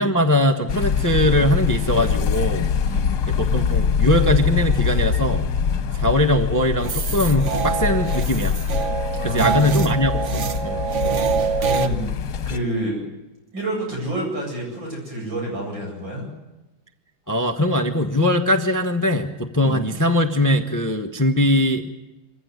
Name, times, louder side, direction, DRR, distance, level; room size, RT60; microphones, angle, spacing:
voice 1, 0.0-2.7 3.4-5.5 6.0-8.6 9.2-10.8 17.3-21.9, left 1 dB, 15° left, 6 dB, 0.9 m, -21 dB
sound 1, 0.7-12.6, left 6 dB, 60° left, 1.6 m, -23 dB
sound 2, 6.8-11.9, right 6 dB, 45° right, 1.1 m, -25 dB
voice 2, 9.1-9.7 11.6-12.2 12.5-13.0 13.5-16.3 19.6-19.8, right 1 dB, 70° right, -1 dB, 9.0 m, -28 dB
23.5 x 16.0 x 9.7 m, 1.0 s
omnidirectional pair, 2.1 m